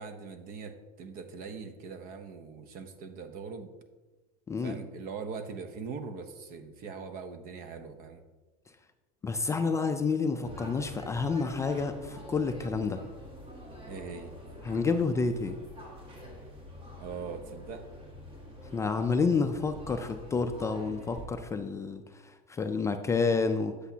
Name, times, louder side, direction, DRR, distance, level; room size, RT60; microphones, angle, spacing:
voice 1, 0.0-3.7 4.6-8.2 13.9-14.3 17.0-17.8, right 5 dB, 50° right, 8 dB, 0.9 m, -41 dB
voice 2, 9.2-13.0 14.6-15.6 18.7-23.7, left 4 dB, 15° left, 7 dB, 0.3 m, -29 dB
sound 1, 10.4-21.3, equal, 30° right, 1.9 m, -46 dB
8.0 x 8.0 x 2.8 m, 1.3 s
supercardioid pair, 130°, 19 cm